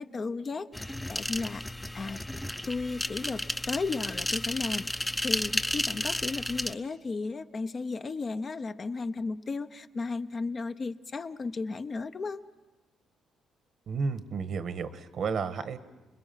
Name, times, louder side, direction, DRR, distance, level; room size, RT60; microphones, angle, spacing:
voice 1, 0.0-2.2 2.7-12.4, left 4 dB, 40° left, 9 dB, 0.8 m, -34 dB
sound 1, 0.7-6.7, left 1 dB, 10° left, 0.7 m, -33 dB
voice 2, 13.9-15.8, right 5 dB, 60° right, 11 dB, 1.3 m, -32 dB
29.5 x 21.0 x 5.8 m, 1.1 s
cardioid pair, 90°, 0 cm